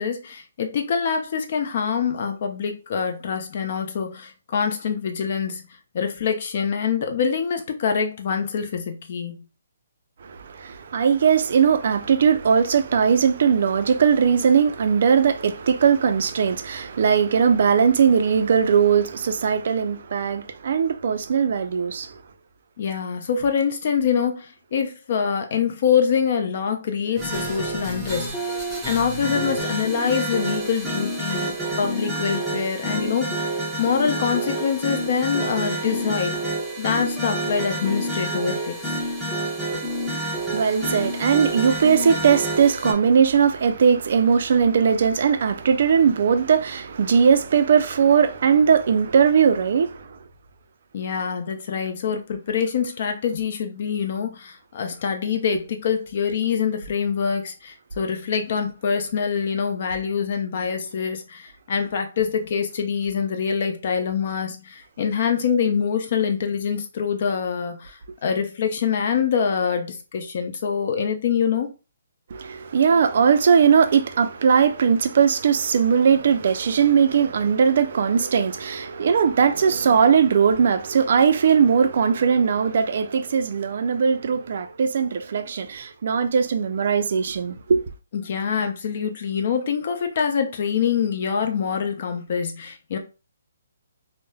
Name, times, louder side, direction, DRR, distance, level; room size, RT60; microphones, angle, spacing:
voice 1, 0.0-5.6 5.9-9.4 22.8-28.6 28.8-33.4 33.8-36.4 36.8-38.9 50.9-71.7 88.1-93.0, left 6 dB, 45° left, 0.5 m, -25 dB
voice 2, 10.2-22.1 40.2-50.2 72.3-87.8, right 6 dB, 55° right, 0.3 m, -19 dB
sound 1, 27.2-42.9, right 1 dB, 5° right, 0.6 m, -28 dB
3.1 x 2.0 x 2.2 m
hypercardioid pair, 160°, 0 cm